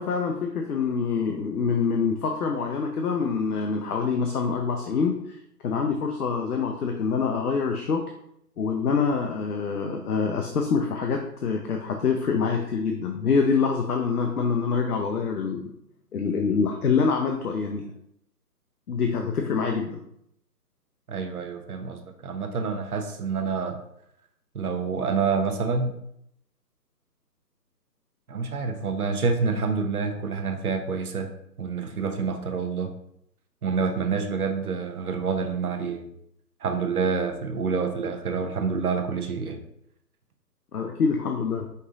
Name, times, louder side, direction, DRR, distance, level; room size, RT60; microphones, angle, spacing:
voice 1, 0.0-5.4 5.6-8.0 8.6-15.7 16.1-17.8 18.9-20.0 40.7-41.7, left 5 dB, 65° left, 3 dB, 0.7 m, -25 dB
voice 2, 21.1-23.8 24.5-25.9 28.3-31.3 31.6-32.9 33.6-36.1 36.6-39.6, right 5 dB, 60° right, 5 dB, 0.8 m, -27 dB
5.4 x 2.4 x 3.8 m, 0.74 s
hypercardioid pair, 175°, 50 cm